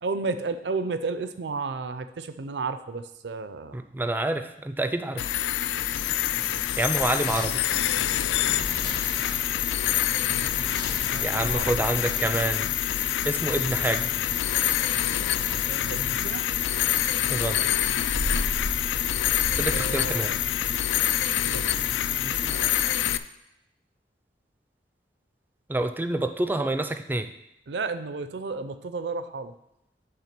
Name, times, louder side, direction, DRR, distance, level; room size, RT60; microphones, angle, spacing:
voice 1, 0.0-3.8 11.1-11.7 15.6-16.5 19.7-20.4 21.4-21.6 22.1-23.0 27.7-29.5, right 4 dB, 70° right, 11 dB, 0.5 m, -33 dB
voice 2, 3.7-5.3 6.8-7.6 11.2-12.7 13.2-14.1 17.3-17.6 19.5-20.3 25.7-27.3, right 2 dB, 10° right, 9 dB, 0.4 m, -27 dB
sound 1, 5.2-23.2, left 11 dB, 85° left, 0.3 m, -26 dB
sound 2, 5.6-22.7, left 1 dB, 60° left, 1.4 m, -39 dB
8.7 x 3.6 x 5.9 m, 0.85 s
head